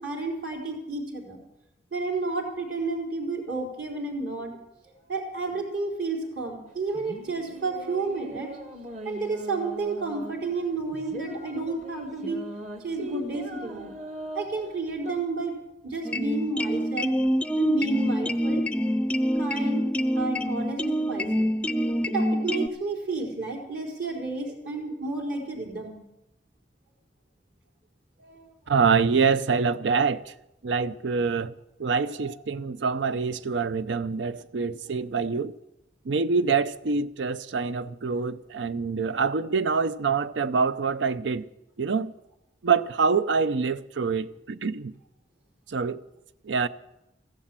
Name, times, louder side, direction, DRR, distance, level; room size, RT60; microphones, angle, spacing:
voice 1, 0.0-1.4 1.9-4.6 5.1-8.5 9.0-12.4 12.8-13.9 14.3-15.5 15.8-17.1 17.6-18.9 19.4-19.9 20.2-21.5 22.1-26.0 28.2-28.5 32.2-32.3, right 3 dB, 65° right, 3.9 m, -31 dB
sound 1, 6.7-15.2, equal, 40° right, 1.4 m, -40 dB
sound 2, 16.0-22.7, equal, 5° left, 0.4 m, -26 dB
voice 2, 28.7-30.3 30.6-31.5 31.8-35.5 36.0-41.5 41.8-42.1 42.6-44.9 45.7-46.0 46.4-46.7, right 5 dB, 90° right, 0.6 m, -25 dB
15.0 x 11.5 x 7.5 m
head